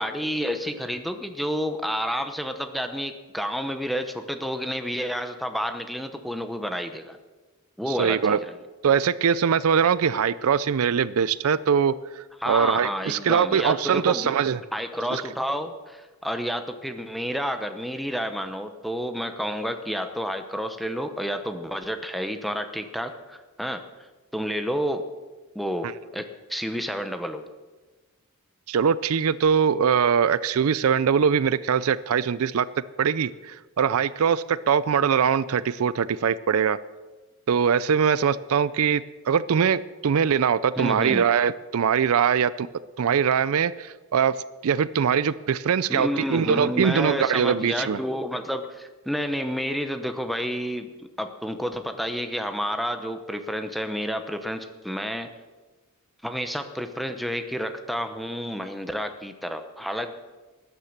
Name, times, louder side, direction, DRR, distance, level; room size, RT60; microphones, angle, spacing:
voice 1, 0.0-7.2 7.8-8.5 12.4-14.3 14.7-23.8 24.3-25.0 25.5-26.2 26.5-27.4 40.8-41.3 45.9-50.9 51.2-55.3 56.2-60.1, equal, ahead, 7 dB, 0.9 m, -30 dB
voice 2, 7.9-8.4 8.8-14.6 15.1-15.2 28.7-32.7 33.0-36.8 37.5-42.7 43.0-44.3 44.6-48.0, right 7 dB, 75° right, 18 dB, 0.4 m, -22 dB
13.0 x 9.7 x 6.6 m, 1.2 s
head